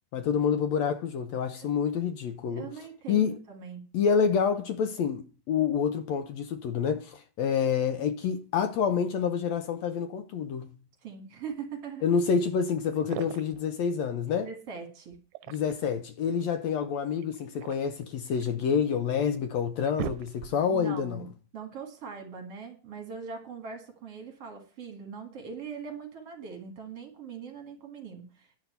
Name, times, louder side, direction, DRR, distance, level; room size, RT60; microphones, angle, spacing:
voice 1, 0.1-2.7 3.1-3.4 3.9-10.7 12.0-14.5 15.5-21.2, left 7 dB, 75° left, 1.7 m, -28 dB
voice 2, 2.5-3.8 11.0-12.0 14.4-15.2 20.7-28.6, right 6 dB, 50° right, 2.5 m, -41 dB
sound 1, 12.9-13.7 15.1-16.0 17.2-18.6 19.2-19.3 19.6-20.8, right 12 dB, 80° right, 2.1 m, -40 dB
10.5 x 5.7 x 8.0 m
omnidirectional pair, 3.9 m